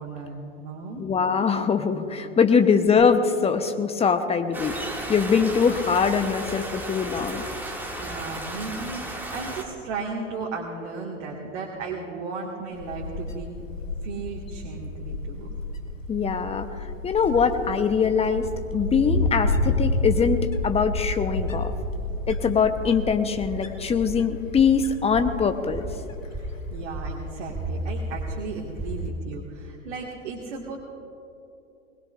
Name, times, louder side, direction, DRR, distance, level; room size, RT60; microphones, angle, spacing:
voice 1, 0.0-1.1 7.6-13.5 14.0-15.5 26.4-30.8, right 3 dB, 60° right, -2 dB, 2.0 m, -35 dB
voice 2, 1.0-7.5 16.1-18.5 18.7-21.7 22.3-25.9, left 6 dB, 15° left, 8 dB, 0.9 m, -23 dB
sound 1, 4.5-9.6, right 1 dB, 5° right, 2.3 m, -34 dB
Wind, 12.7-29.0, left 2 dB, 85° left, 1.3 m, -31 dB
sound 2, 17.2-29.1, right 2 dB, 20° right, 3.1 m, -38 dB
21.0 x 20.5 x 2.6 m, 2.9 s
figure-of-eight pair, 90°, 38 cm